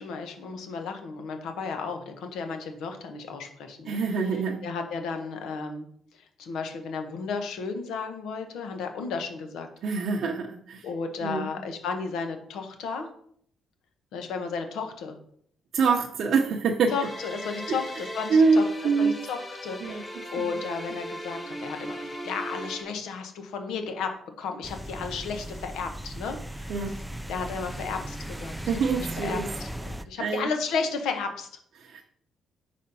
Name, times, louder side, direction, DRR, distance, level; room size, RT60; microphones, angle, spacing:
voice 1, 0.0-4.3 4.6-5.9 6.1-9.7 10.8-13.1 14.1-15.2 16.9-18.7 19.0-26.7 27.3-28.5 29.0-31.5, left 5 dB, 85° left, 5 dB, 1.0 m, -33 dB
voice 2, 3.9-4.6 9.8-10.9 11.2-11.5 15.7-16.9 17.7-17.8 18.3-19.2 19.8-20.0 20.4-20.5 26.7-27.0 28.7-29.5 30.2-30.5 31.8-32.1, right 4 dB, 65° right, 0 dB, 0.7 m, -25 dB
sound 1, 16.9-22.8, equal, 20° left, 1.3 m, -38 dB
sound 2, 24.6-30.0, right 1 dB, 5° right, 0.4 m, -37 dB
5.0 x 4.2 x 5.4 m, 0.64 s
cardioid pair, 90°, 0 cm